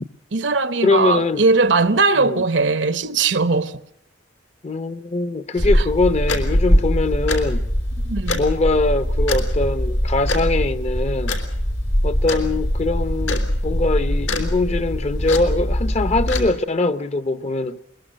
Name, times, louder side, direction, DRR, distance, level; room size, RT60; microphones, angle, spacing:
voice 1, 0.3-3.7 5.7-5.8 8.0-8.4, right 3 dB, 70° right, 0.9 m, -19 dB
voice 2, 0.8-1.4 2.2-2.4 4.6-7.7 8.3-11.4 12.0-17.8, left 2 dB, 35° left, 0.8 m, -22 dB
sound 1, 5.6-16.5, equal, 85° left, 3.4 m, -22 dB
22.0 x 21.0 x 6.5 m
head